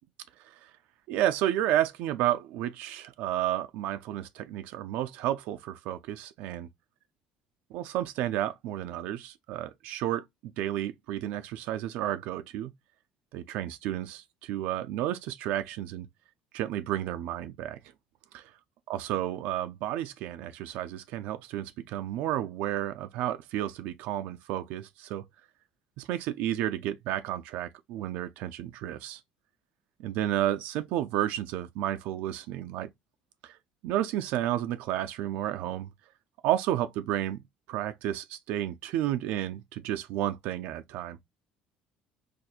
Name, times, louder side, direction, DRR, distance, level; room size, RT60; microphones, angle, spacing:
voice 1, 1.1-6.7 7.7-12.7 13.3-16.1 16.5-17.8 18.3-18.4 18.9-25.2 26.0-29.2 30.0-32.9 33.4-33.6 33.8-35.9 36.4-37.4 37.7-41.2, right 12 dB, 65° right, 0.4 m, -31 dB
4.2 x 2.5 x 2.3 m
cardioid pair, 175°, 3 cm